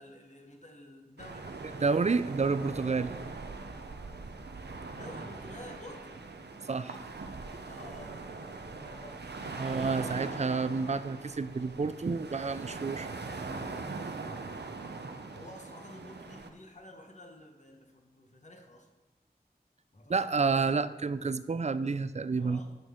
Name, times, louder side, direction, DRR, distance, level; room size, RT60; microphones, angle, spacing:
voice 1, 0.0-2.0 4.9-6.2 7.7-9.6 14.3-14.8 15.3-18.9 19.9-20.8 22.4-22.8, left 1 dB, 45° left, 2 dB, 1.3 m, -51 dB
sound 1, 1.2-16.5, right 3 dB, 85° right, 0.6 m, -41 dB
voice 2, 1.8-3.1 6.7-7.0 9.6-13.1 20.1-22.6, right 4 dB, 40° right, 14 dB, 0.4 m, -29 dB
9.2 x 6.0 x 3.8 m, 1.1 s
wide cardioid pair, 55°, 17 cm